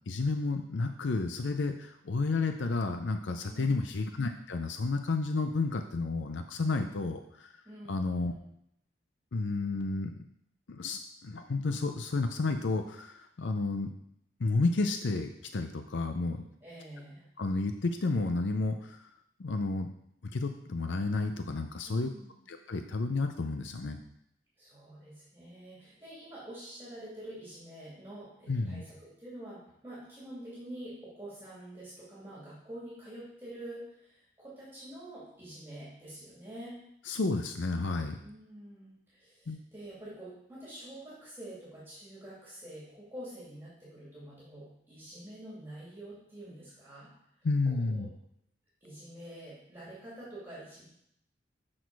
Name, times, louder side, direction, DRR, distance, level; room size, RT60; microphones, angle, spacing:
voice 1, 0.1-1.7 2.1-7.2 7.9-8.3 9.3-10.1 10.7-13.1 13.4-13.9 14.4-16.4 17.4-18.8 19.4-19.9 20.3-22.1 22.5-24.0 28.5-28.8 37.1-38.2 39.5-39.6 47.4-48.1, left 3 dB, 85° left, 6 dB, 0.6 m, -31 dB
voice 2, 3.5-3.9 7.6-8.5 16.6-17.2 21.9-22.4 24.6-36.7 38.2-47.1 47.6-48.1 48.8-50.8, right 1 dB, 10° right, -9 dB, 2.6 m, -47 dB
6.3 x 6.3 x 4.7 m, 0.74 s
head